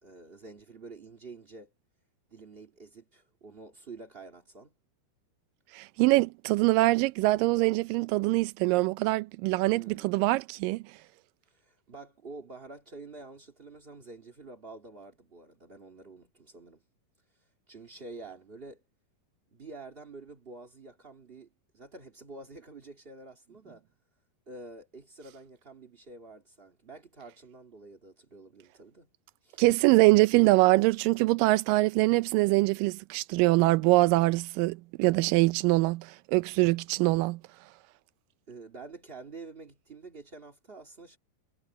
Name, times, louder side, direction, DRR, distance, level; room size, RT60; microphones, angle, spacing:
voice 1, 0.0-1.7 2.3-4.7 9.7-10.1 11.5-16.8 17.7-18.8 19.5-21.5 21.7-23.8 24.5-29.1 29.4-29.6 38.5-41.2, right 3 dB, 50° right, 0.6 m, -48 dB
voice 2, 5.7-10.8 29.6-37.4, right 21 dB, 90° right, 1.9 m, -24 dB
omnidirectional pair, 4.5 m